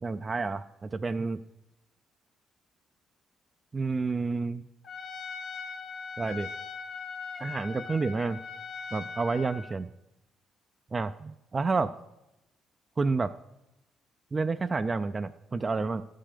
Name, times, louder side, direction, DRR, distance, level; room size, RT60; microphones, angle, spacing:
voice 1, 0.0-1.4 3.7-4.6 6.2-6.5 7.4-8.4 8.9-9.9 10.9-11.9 13.0-13.3 14.3-16.0, right 4 dB, 30° right, 10 dB, 0.3 m, -29 dB
Trumpet, 4.8-9.7, left 5 dB, 55° left, 0.9 m, -40 dB
12.5 x 5.5 x 5.0 m, 0.90 s
cardioid pair, 90°, 0 cm